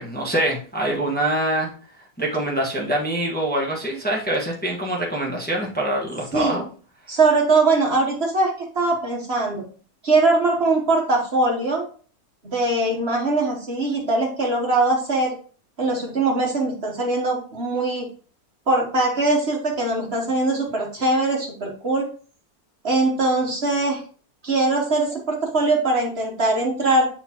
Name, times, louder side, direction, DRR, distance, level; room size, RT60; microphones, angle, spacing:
voice 1, 0.0-1.7 2.2-6.7, right 1 dB, 5° left, -2 dB, 1.1 m, -24 dB
voice 2, 6.3-6.6 7.1-9.6 10.0-11.9 12.4-15.3 15.8-18.1 18.7-22.0 22.8-24.0 24.4-27.1, right 2 dB, 45° right, 0 dB, 1.3 m, -21 dB
8.1 x 4.2 x 2.9 m, 0.41 s
omnidirectional pair, 1.6 m